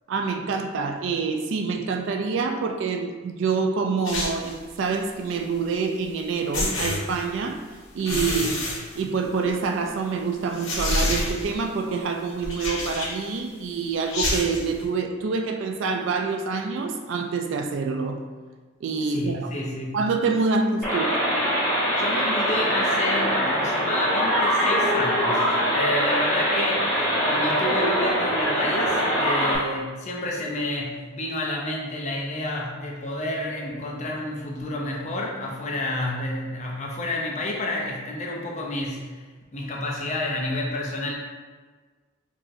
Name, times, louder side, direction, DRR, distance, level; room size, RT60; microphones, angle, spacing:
voice 1, 0.1-7.6 7.9-8.6 8.9-18.3 18.8-19.5 19.9-21.1, right 4 dB, 60° right, 4 dB, 0.3 m, -26 dB
sound 1, 4.0-4.7 6.0-6.1 6.5-7.5 8.0-9.5 9.9-10.0 10.5-11.7 12.4-13.3 14.0-14.7, left 1 dB, 70° left, 1.2 m, -28 dB
voice 2, 19.0-20.0 21.9-39.3 39.5-41.1, left 1 dB, 35° left, -2 dB, 0.5 m, -30 dB
sound 2, 20.8-29.6, equal, 15° left, 1.5 m, -23 dB
4.8 x 2.7 x 2.5 m, 1.4 s
head